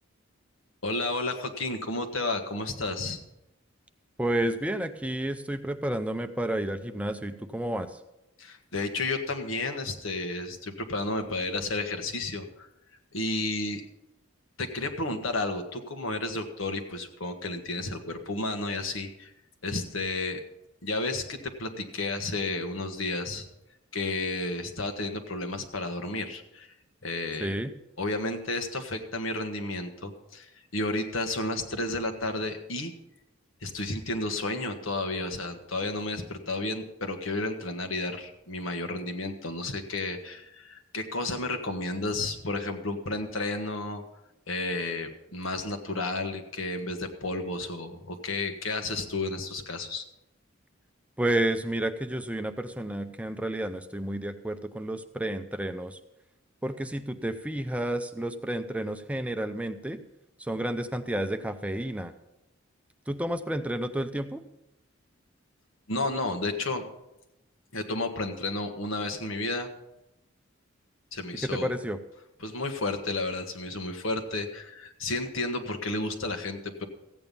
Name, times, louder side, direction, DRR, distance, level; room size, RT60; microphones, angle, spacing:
voice 1, 0.8-3.2 8.4-12.7 13.1-13.8 14.6-19.3 19.6-20.4 20.8-23.5 23.9-26.7 27.0-27.5 28.0-32.9 33.6-44.0 44.5-50.0 65.9-66.9 67.7-69.7 71.1-71.7 72.4-76.8, left 2 dB, 75° left, 5 dB, 1.4 m, -32 dB
voice 2, 4.2-7.9 27.4-27.7 51.2-56.0 56.6-60.0 60.4-62.1 63.1-64.4 71.4-72.0, right 1 dB, 5° right, 8 dB, 0.6 m, -31 dB
15.0 x 8.9 x 5.4 m, 0.89 s
head